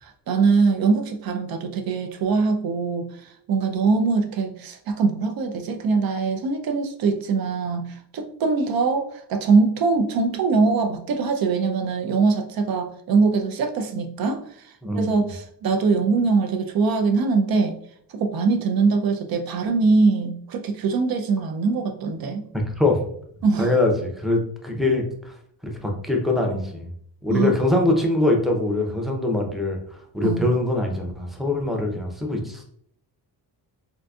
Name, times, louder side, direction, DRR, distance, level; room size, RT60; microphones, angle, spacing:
voice 1, 0.0-14.4 14.9-17.8 18.1-22.5 23.4-23.7 27.3-27.5 30.2-30.5, right 4 dB, 60° right, 5 dB, 0.6 m, -22 dB
voice 2, 14.8-15.3 22.8-23.1 23.6-25.3 25.6-26.9 27.2-29.8 30.1-32.6, left 2 dB, ahead, 1 dB, 0.6 m, -23 dB
3.9 x 2.6 x 2.3 m, 0.66 s
cardioid pair, 100°, 41 cm